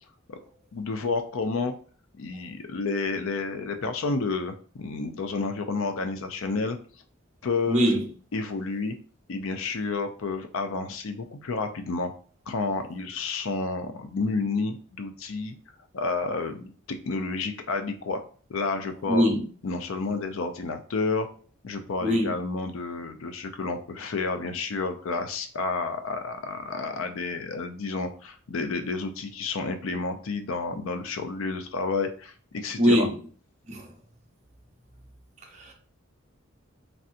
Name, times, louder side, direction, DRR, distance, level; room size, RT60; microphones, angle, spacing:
voice 1, 0.7-1.7 2.1-6.8 7.4-7.9 8.3-9.0 9.3-12.1 12.5-15.6 15.9-18.2 18.5-19.3 19.6-21.3 21.6-33.1, left 4 dB, 75° left, 0.5 m, -30 dB
voice 2, 7.7-8.0 19.1-19.5 22.0-22.3 32.8-33.1 33.7-33.9 35.6-35.7, equal, 35° right, 0.7 m, -22 dB
3.2 x 2.7 x 2.5 m
head